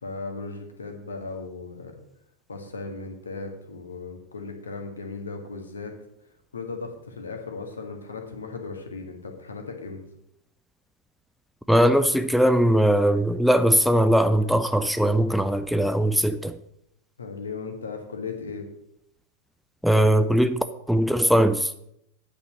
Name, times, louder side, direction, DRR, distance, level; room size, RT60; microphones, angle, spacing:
voice 1, 0.0-2.0 2.5-5.9 6.5-10.0 17.2-18.7, left 4 dB, 70° left, 1.7 m, -36 dB
voice 2, 11.7-16.6 19.8-21.7, equal, ahead, 0.4 m, -20 dB
8.7 x 5.6 x 6.6 m
figure-of-eight pair, 90°, 0 cm